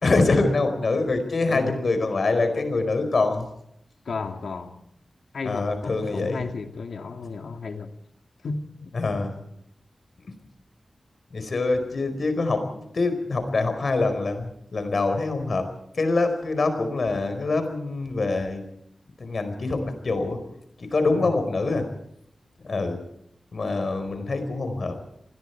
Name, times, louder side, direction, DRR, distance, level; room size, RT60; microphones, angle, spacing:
voice 1, 0.0-3.5 5.4-6.5 8.9-9.4 11.3-15.7 15.9-18.6 19.2-20.4 20.8-21.9 22.6-23.0 23.5-25.0, left 3 dB, 55° left, 4.6 m, -25 dB
voice 2, 1.5-1.9 4.1-4.8 5.3-7.9 8.4-8.6 21.1-21.3, left 4 dB, 80° left, 2.3 m, -33 dB
28.0 x 20.5 x 4.7 m
wide cardioid pair, 140°, 0 cm